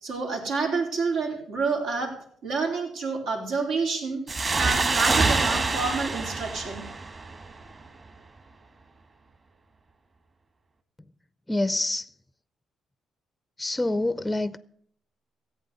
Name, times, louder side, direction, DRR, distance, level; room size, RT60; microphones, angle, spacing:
voice 1, 0.0-2.1 2.4-4.2 4.6-6.8, right 4 dB, 85° right, 3.9 m, -28 dB
sound 1, 4.3-7.7, right 3 dB, 35° right, 2.1 m, -26 dB
voice 2, 11.5-12.1 13.6-14.6, left 2 dB, 10° left, 0.5 m, -26 dB
15.0 x 8.3 x 6.8 m
cardioid pair, 90°, 0 cm